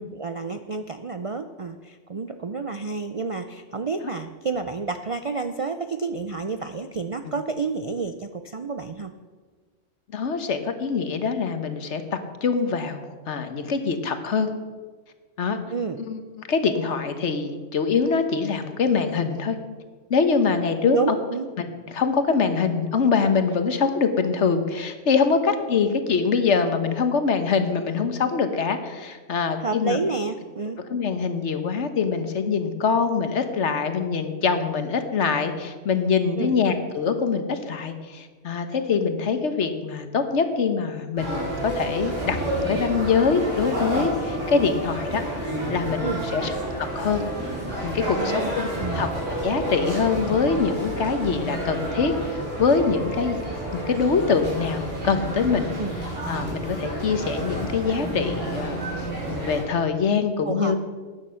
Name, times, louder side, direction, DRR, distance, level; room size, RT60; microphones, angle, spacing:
voice 1, 0.1-9.1 15.7-16.0 20.8-21.5 29.6-30.8 36.3-36.6 46.0-46.5 48.2-49.1 55.8-56.0 60.4-60.7, right 4 dB, 50° right, 8 dB, 0.4 m, -30 dB
voice 2, 10.1-14.5 15.4-15.6 16.1-16.2 16.5-19.6 20.1-21.2 21.6-30.0 30.9-42.4 42.7-46.5 46.8-47.2 47.8-48.7 48.9-49.1 49.4-53.4 53.7-55.7 56.3-60.8, left 5 dB, 70° left, 8 dB, 1.4 m, -24 dB
sound 1, 41.2-59.6, right 1 dB, 85° right, 4.6 m, -30 dB
12.5 x 9.5 x 5.7 m, 1.4 s
omnidirectional pair, 1.3 m